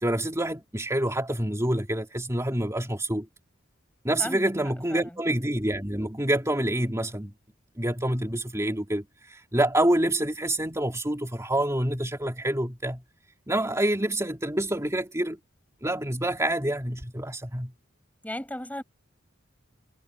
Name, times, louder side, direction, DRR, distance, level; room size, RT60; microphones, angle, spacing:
voice 1, 0.0-3.3 4.0-7.3 7.8-13.0 13.5-15.4 15.8-17.7, right 1 dB, 15° right, 3.5 m, -27 dB
voice 2, 4.2-4.5 4.9-5.0 18.2-18.8, left 1 dB, 10° left, 5.4 m, -34 dB
head